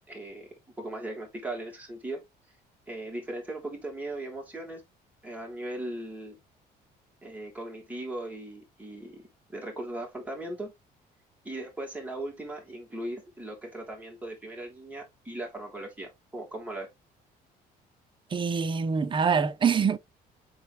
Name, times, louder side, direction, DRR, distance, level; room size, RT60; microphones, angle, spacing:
voice 1, 0.1-2.2 2.9-4.8 5.2-6.4 7.2-9.2 9.5-10.7 11.4-16.9, right 1 dB, 10° right, 3.5 m, -38 dB
voice 2, 18.3-20.0, right 6 dB, 30° right, 0.6 m, -25 dB
7.0 x 4.2 x 3.3 m
cardioid pair, 110°, 17 cm